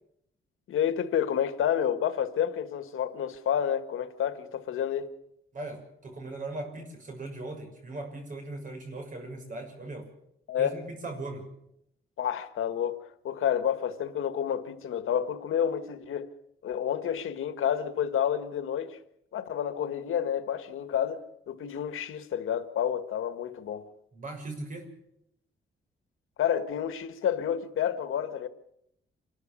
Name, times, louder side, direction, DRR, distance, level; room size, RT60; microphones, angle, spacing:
voice 1, 0.7-5.1 10.5-10.8 12.2-16.3 16.6-19.0 19.3-23.9 26.4-28.5, left 9 dB, 90° left, 1.7 m, -29 dB
voice 2, 5.5-10.1 10.6-11.5 24.1-24.9, right 2 dB, 40° right, 6.2 m, -39 dB
27.0 x 13.0 x 8.6 m
wide cardioid pair, 170°, 21 cm